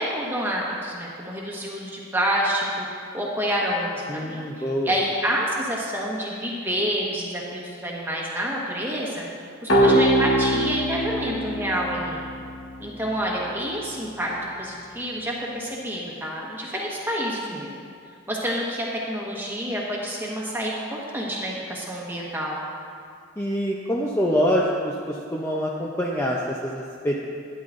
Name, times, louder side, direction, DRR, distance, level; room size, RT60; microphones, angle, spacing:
voice 1, 0.0-2.6 3.1-9.3 9.6-12.2 12.8-14.3 14.6-17.7 18.3-22.6, equal, 10° right, -4 dB, 1.3 m, -28 dB
voice 2, 4.1-4.9 23.4-27.2, equal, 10° left, -3 dB, 0.5 m, -25 dB
sound 1, 9.7-13.2, right 1 dB, 75° left, 1.5 m, -23 dB
12.0 x 10.5 x 2.6 m, 2.3 s
head